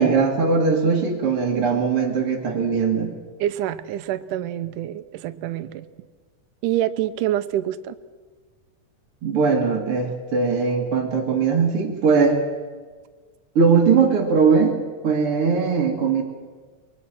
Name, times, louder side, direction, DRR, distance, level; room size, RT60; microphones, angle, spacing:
voice 1, 0.0-3.1 9.2-12.4 13.6-14.8 15.0-16.2, right 5 dB, 45° right, 0 dB, 2.7 m, -20 dB
voice 2, 3.4-5.9 6.6-8.0, right 12 dB, 80° right, 11 dB, 2.3 m, -26 dB
24.0 x 21.5 x 6.1 m, 1.4 s
omnidirectional pair, 3.7 m